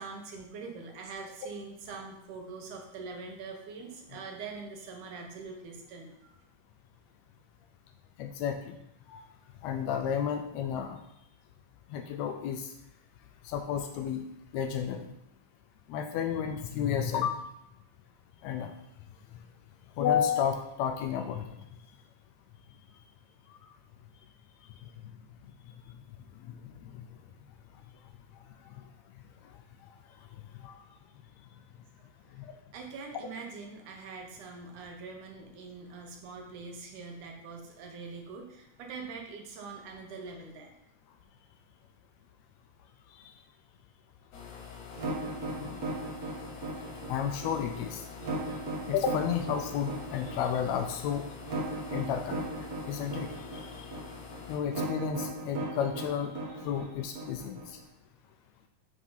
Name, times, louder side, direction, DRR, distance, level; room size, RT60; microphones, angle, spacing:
voice 1, 0.0-6.4 32.3-32.4 32.7-40.7, right 4 dB, 75° right, 2 dB, 2.5 m, -43 dB
voice 2, 8.2-8.8 9.1-9.3 9.6-11.0 11.9-12.7 13.4-14.2 14.5-15.1 15.9-17.4 18.4-18.7 20.0-21.6 26.4-27.1 28.8-28.9 30.6-30.8 32.3-32.5 43.2-43.3 45.6-46.1 47.1-48.1 48.9-51.2 51.9-53.9 54.5-57.8, left 8 dB, 85° left, 5 dB, 1.5 m, -32 dB
sound 1, 44.3-54.6, left 6 dB, 65° left, 1.9 m, -46 dB
sound 2, 44.9-57.8, right 2 dB, 50° right, 1.0 m, -37 dB
7.4 x 4.0 x 5.6 m, 0.79 s
omnidirectional pair, 3.8 m